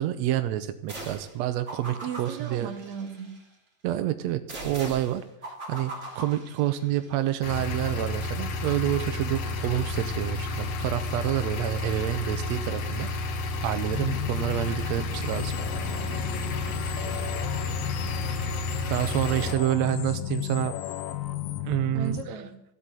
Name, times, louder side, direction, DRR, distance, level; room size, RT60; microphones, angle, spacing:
voice 1, 0.0-2.7 3.8-5.2 5.7-13.1 13.6-15.5 18.9-20.7 21.6-22.2, right 13 dB, 75° right, 9 dB, 1.6 m, -28 dB
sound 1, 0.9-1.4 1.7-3.4 4.5-7.1, right 1 dB, 20° right, 3.2 m, -40 dB
voice 2, 2.0-3.4 19.5-19.6 21.9-22.6, right 8 dB, 55° right, 3 dB, 3.2 m, -36 dB
sound 2, 7.4-19.6, left 2 dB, 60° left, 2.1 m, -31 dB
sound 3, 13.9-22.2, left 11 dB, 85° left, 2.7 m, -34 dB
15.0 x 8.3 x 9.1 m, 0.84 s
omnidirectional pair, 4.0 m